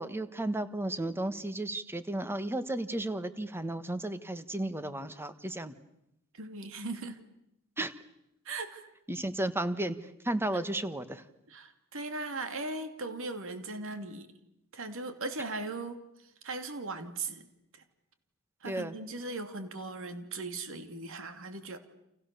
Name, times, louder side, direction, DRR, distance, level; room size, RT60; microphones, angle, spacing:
voice 1, 0.0-5.7 7.8-7.9 9.1-10.0 10.2-11.2 18.6-18.9, right 1 dB, 10° right, 11 dB, 1.4 m, -33 dB
voice 2, 6.3-7.2 8.4-8.9 11.5-14.3 14.7-17.5 17.7-17.8 18.6-21.8, right 3 dB, 65° right, 8 dB, 2.7 m, -38 dB
30.0 x 28.0 x 6.9 m, 0.83 s
head